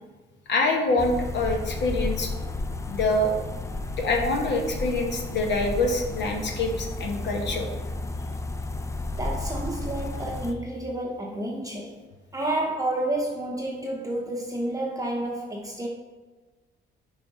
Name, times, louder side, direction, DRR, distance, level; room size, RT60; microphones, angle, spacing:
voice 1, 0.5-2.3 2.9-3.3 4.0-7.7, left 2 dB, 60° left, 2 dB, 1.1 m, -25 dB
sound 1, 1.0-10.5, left 2 dB, 15° left, 0.5 m, -32 dB
voice 2, 9.2-12.0 12.3-15.9, right 1 dB, 15° right, -1 dB, 0.8 m, -30 dB
5.9 x 3.6 x 5.2 m, 1.3 s
cardioid pair, 90°, 20 cm